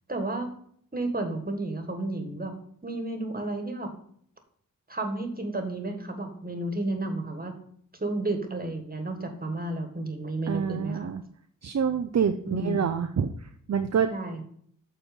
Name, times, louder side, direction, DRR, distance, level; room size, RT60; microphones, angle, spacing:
voice 1, 0.1-0.5 0.9-2.5 2.8-3.9 4.9-7.5 7.9-11.1 12.4-12.9 14.1-14.4, right 2 dB, 25° right, 5 dB, 1.7 m, -32 dB
voice 2, 10.5-11.2 11.6-14.1, right 7 dB, 50° right, 8 dB, 0.6 m, -27 dB
7.2 x 4.3 x 5.2 m, 0.63 s
cardioid pair, 50°, 34 cm